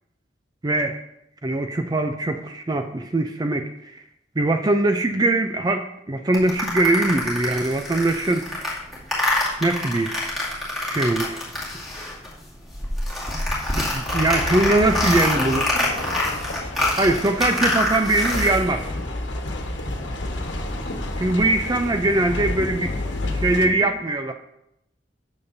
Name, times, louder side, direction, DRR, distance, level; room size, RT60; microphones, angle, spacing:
voice 1, 0.6-1.0 1.4-4.0 4.4-8.5 9.6-10.2 10.9-11.4 13.9-15.6 17.0-18.8 21.2-22.9 23.3-24.3, right 2 dB, 20° right, 6 dB, 0.4 m, -21 dB
sound 1, 6.3-12.4 12.6-18.5, left 1 dB, ahead, 2.5 m, -26 dB
sound 2, 14.1-23.7, left 1 dB, 90° left, 1.2 m, -30 dB
voice 2, 14.7-16.4 22.5-24.0, left 1 dB, 30° left, 0 dB, 1.8 m, -41 dB
13.0 x 7.2 x 2.7 m, 0.81 s
head